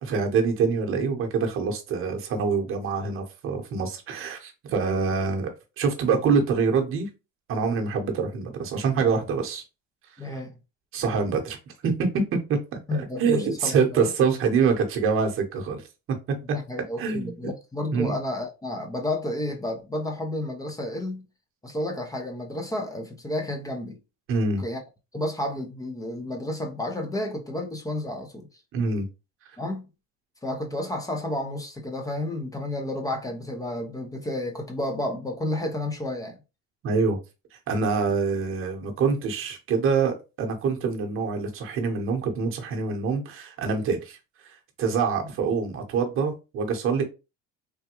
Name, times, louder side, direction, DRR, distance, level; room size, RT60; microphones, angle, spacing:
voice 1, 0.0-5.5 5.8-7.1 7.5-9.6 10.9-11.6 11.8-15.8 17.0-17.5 17.9-18.2 24.3-24.6 28.7-29.1 36.8-37.2 37.5-44.2 44.4-47.0, right 5 dB, 40° right, 0.9 m, -25 dB
voice 2, 10.2-10.5 12.9-14.1 16.5-21.3 21.6-24.0 24.6-24.8 25.1-28.5 29.6-29.9 30.4-36.4, left 1 dB, 10° left, 0.5 m, -31 dB
3.4 x 2.2 x 2.9 m
cardioid pair, 125°, 32 cm